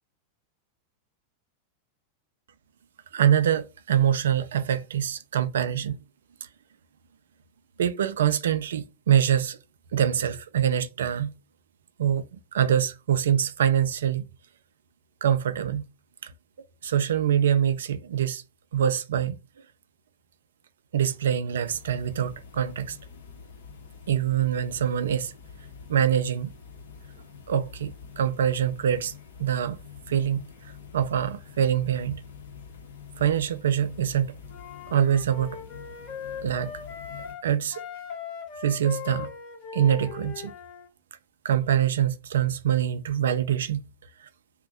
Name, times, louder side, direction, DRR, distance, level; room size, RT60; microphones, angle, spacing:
voice 1, 3.1-6.0 7.8-9.6 9.9-11.3 12.0-14.3 15.2-15.8 16.2-16.3 16.8-18.4 18.7-19.4 20.9-23.0 24.1-25.3 25.9-26.5 27.5-29.1 29.4-29.8 30.1-30.5 30.9-32.2 33.2-34.4 34.9-35.6 36.4-36.7 37.4-37.8 38.6-39.3 39.7-40.5 41.4-43.8 44.2-44.3, right 9 dB, 65° right, 0.3 m, -24 dB
sound 1, 21.5-37.3, left 6 dB, 65° left, 0.7 m, -46 dB
Wind instrument woodwind instrument, 34.5-37.4 37.7-40.9, left 7 dB, 35° left, 0.7 m, -39 dB
2.5 x 2.1 x 3.8 m
figure-of-eight pair, 90°, 0 cm